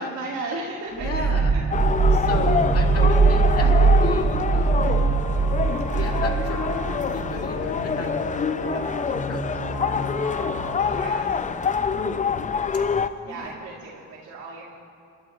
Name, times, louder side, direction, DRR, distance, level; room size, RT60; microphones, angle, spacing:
voice 1, 0.0-1.6 10.9-11.3 13.3-14.6, right 3 dB, 75° right, -8 dB, 2.4 m, -35 dB
voice 2, 0.9-1.5 2.1-4.9 5.9-8.2 8.7-10.3 11.2-11.5 11.9-12.3 13.2-13.6, left 3 dB, 50° left, 0 dB, 2.3 m, -34 dB
sound 1, 1.0-7.7, right 4 dB, 25° right, 0.4 m, -21 dB
sound 2, 1.7-13.1, left 6 dB, 25° left, 0.5 m, -26 dB
sound 3, 2.2-4.4 4.8-11.0, left 1 dB, 65° left, 3.8 m, -32 dB
28.0 x 12.5 x 2.5 m, 2.4 s
cardioid pair, 90°, 30 cm